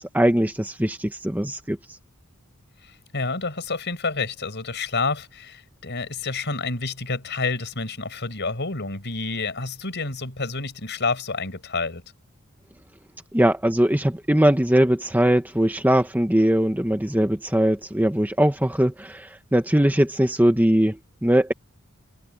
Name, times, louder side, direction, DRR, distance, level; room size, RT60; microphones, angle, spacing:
voice 1, 0.0-1.8 13.3-21.5, right 1 dB, 10° right, 1.1 m, -21 dB
voice 2, 3.1-12.0, left 3 dB, 55° left, 5.8 m, -29 dB
head